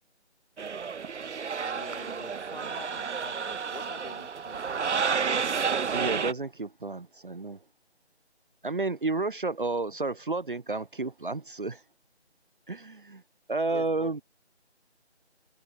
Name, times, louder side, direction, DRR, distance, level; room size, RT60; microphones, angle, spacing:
sound 1, 0.6-6.3, right 6 dB, 85° right, 0.7 m, -31 dB
voice 1, 1.6-4.9 13.7-14.2, left 3 dB, 50° left, 6.2 m, -46 dB
voice 2, 5.9-7.6 8.6-11.8 12.7-13.2 13.5-14.2, right 3 dB, 50° right, 1.1 m, -31 dB
open air
figure-of-eight pair, 170°, 34 cm